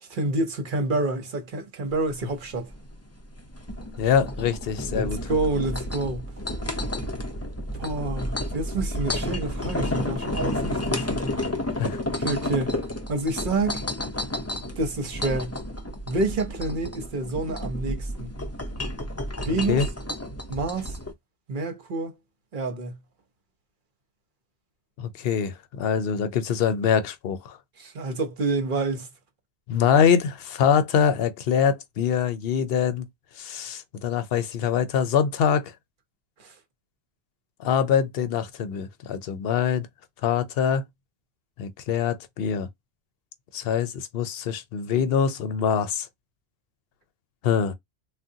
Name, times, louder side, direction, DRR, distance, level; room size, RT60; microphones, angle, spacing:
voice 1, 0.0-2.7 4.9-6.3 7.8-11.1 12.2-12.8 13.1-13.8 14.8-15.6 16.1-18.3 19.4-19.8 20.5-21.0 21.5-22.1 22.5-23.0 27.8-29.1 36.4-36.5, right 2 dB, 55° right, 0.9 m, -28 dB
sound 1, 1.9-21.1, left 1 dB, 20° left, 0.5 m, -31 dB
voice 2, 4.0-5.2 11.8-12.0 19.5-19.9 25.0-27.6 29.7-33.1 33.4-35.7 37.6-39.9 40.2-40.8 41.6-42.7 43.5-46.1 47.4-47.7, left 7 dB, 70° left, 0.8 m, -24 dB
3.7 x 2.2 x 2.7 m
omnidirectional pair, 1.1 m